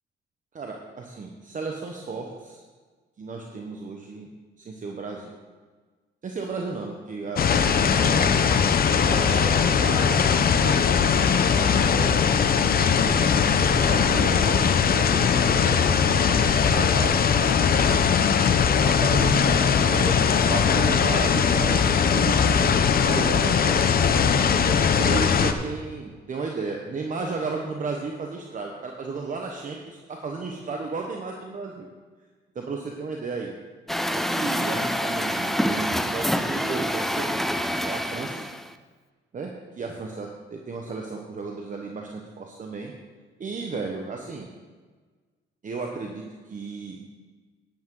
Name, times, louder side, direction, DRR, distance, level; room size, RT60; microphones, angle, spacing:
voice 1, 0.5-2.6 3.2-4.3 4.6-5.3 6.2-8.5 9.0-10.3 10.6-12.1 12.7-18.1 18.8-20.2 20.5-24.2 24.6-31.9 32.5-33.5 34.1-37.4 37.7-38.4 39.3-42.9 43.4-44.5 45.6-47.0, right 4 dB, 40° right, 1 dB, 1.2 m, -34 dB
sound 1, 7.4-25.5, left 6 dB, 50° left, 0.8 m, -20 dB
Truck, 33.9-38.7, equal, ahead, 0.5 m, -26 dB
11.0 x 10.5 x 3.9 m, 1.4 s
cardioid pair, 90°, 20 cm